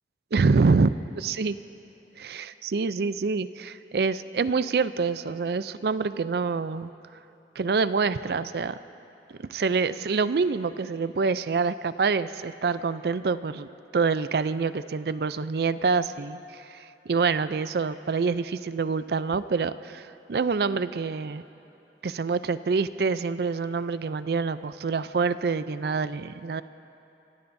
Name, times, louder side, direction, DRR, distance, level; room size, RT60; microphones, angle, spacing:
voice 1, 0.3-1.6 2.2-6.9 7.6-8.8 9.5-13.7 13.9-21.4 22.0-26.6, right 4 dB, 65° right, 14 dB, 0.4 m, -26 dB
28.0 x 16.5 x 2.7 m, 3.0 s
head